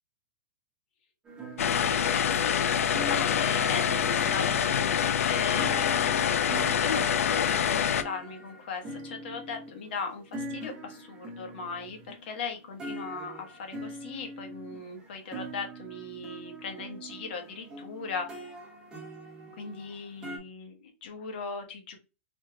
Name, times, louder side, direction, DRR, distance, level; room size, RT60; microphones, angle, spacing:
sound 1, 1.3-20.4, right 1 dB, 10° right, 0.9 m, -43 dB
sound 2, 1.6-8.0, left 8 dB, 90° left, 0.5 m, -26 dB
voice 1, 1.6-6.0 6.8-18.5 19.6-22.0, left 5 dB, 50° left, 4 dB, 1.1 m, -38 dB
3.3 x 3.2 x 3.3 m, 0.29 s
hypercardioid pair, 170°, 7 cm